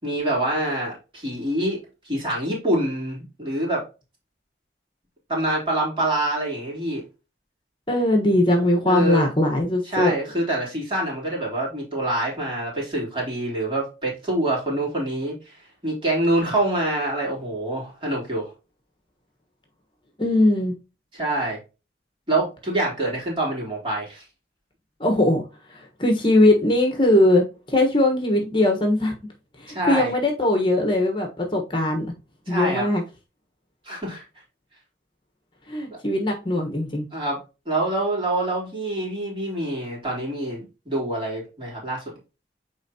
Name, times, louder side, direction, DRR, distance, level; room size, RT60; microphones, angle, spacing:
voice 1, 0.0-3.8 5.3-7.0 8.8-9.3 9.8-15.6 15.8-18.5 21.1-21.6 22.3-24.2 29.7-30.1 32.5-32.9 33.8-34.2 35.9-36.0 37.1-37.4 37.7-42.0, right 1 dB, 30° right, 3.5 m, -26 dB
voice 2, 7.9-10.1 20.2-20.7 25.0-25.4 25.7-29.1 29.6-32.1 32.5-33.0 35.7-37.1, left 1 dB, 25° left, 1.2 m, -20 dB
9.1 x 3.7 x 2.8 m
head